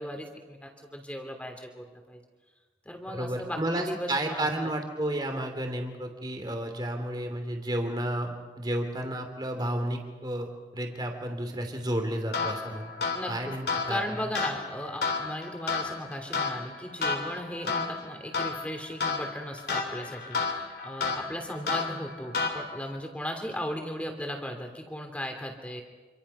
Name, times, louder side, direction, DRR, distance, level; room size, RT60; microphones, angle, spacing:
voice 1, 0.0-2.2 2.8-4.7 13.1-13.5 13.9-25.8, equal, 5° left, 4 dB, 3.1 m, -37 dB
voice 2, 3.1-12.9 13.3-14.0, right 1 dB, 25° right, 4 dB, 2.8 m, -32 dB
sound 1, 12.3-23.0, left 4 dB, 55° left, 3.4 m, -32 dB
27.0 x 26.5 x 5.7 m, 1.3 s
head